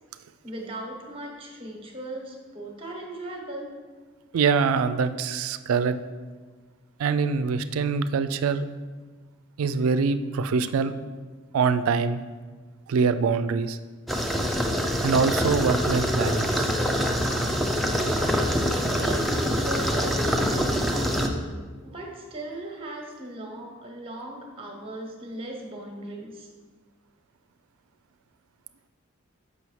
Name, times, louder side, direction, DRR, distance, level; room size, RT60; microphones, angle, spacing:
voice 1, 0.4-3.7 18.7-21.5 21.8-26.5, right 1 dB, 25° right, 1 dB, 1.0 m, -38 dB
voice 2, 4.3-6.0 7.0-8.6 9.6-10.9 11.5-12.2 12.9-13.8 15.0-16.7 20.9-21.0, right 5 dB, 85° right, 12 dB, 0.3 m, -24 dB
sound 1, 14.1-21.3, equal, ahead, 0.4 m, -25 dB
6.9 x 5.4 x 3.1 m, 1.4 s
head